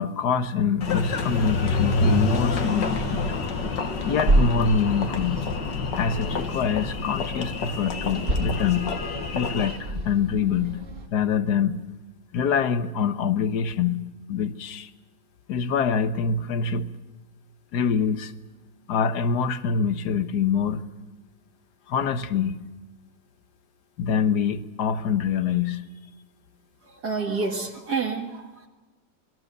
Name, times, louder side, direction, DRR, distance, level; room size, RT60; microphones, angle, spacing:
voice 1, 0.0-3.2 4.1-5.4 5.9-8.9 9.3-10.8 11.1-11.8 12.3-14.9 15.5-16.9 17.7-18.3 18.9-20.9 21.9-22.7 24.0-25.8, left 6 dB, 70° left, 1.5 m, -25 dB
Engine, 0.8-9.8, left 3 dB, 85° left, 2.2 m, -27 dB
sound 1, 1.1-11.1, right 2 dB, 45° right, 2.5 m, -31 dB
voice 2, 26.8-28.7, right 4 dB, 65° right, 2.3 m, -29 dB
27.0 x 20.5 x 6.7 m
omnidirectional pair, 1.9 m